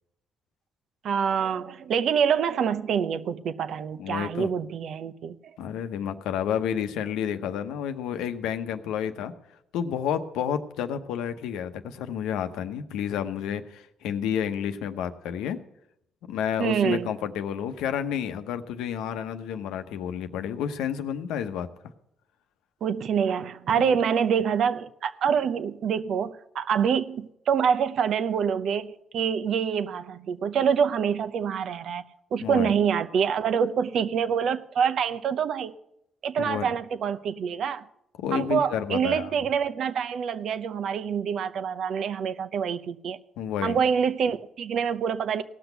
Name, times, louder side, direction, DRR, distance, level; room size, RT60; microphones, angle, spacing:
voice 1, 1.0-5.5 16.6-17.1 22.8-32.0 32.3-35.7 36.2-37.9 38.3-43.2 43.6-45.4, right 7 dB, 70° right, 0.7 m, -26 dB
voice 2, 4.0-4.5 5.6-9.3 9.7-15.6 16.3-21.7 23.7-23.9 32.4-32.7 36.4-36.7 38.2-39.3 43.4-43.8, left 8 dB, 85° left, 0.8 m, -30 dB
17.0 x 6.1 x 6.8 m
supercardioid pair, 65°, 0 cm